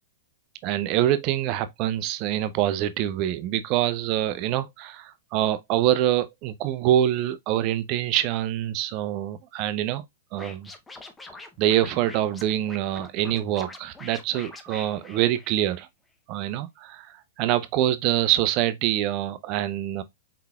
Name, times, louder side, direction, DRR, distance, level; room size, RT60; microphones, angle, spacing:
voice 1, 0.6-10.0 10.3-10.7 11.6-15.9 16.3-20.0, right 12 dB, 40° right, 0.6 m, -25 dB
Scratching (performance technique), 10.3-15.8, left 3 dB, 10° left, 0.6 m, -44 dB
4.7 x 3.9 x 2.2 m
hypercardioid pair, 140°, 0 cm